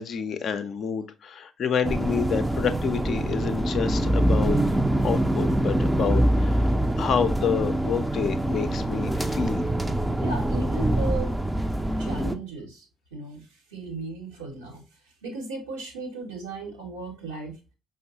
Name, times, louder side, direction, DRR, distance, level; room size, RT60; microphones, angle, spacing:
voice 1, 0.0-4.6 5.0-6.7 7.0-9.8, left 7 dB, 55° left, 0.4 m, -28 dB
sound 1, 1.8-12.4, right 1 dB, 10° right, 0.4 m, -24 dB
voice 2, 10.2-11.3 12.0-12.9 13.1-14.8 15.2-17.6, right 3 dB, 80° right, 0.9 m, -35 dB
5.1 x 2.1 x 2.8 m
figure-of-eight pair, 45°, 0 cm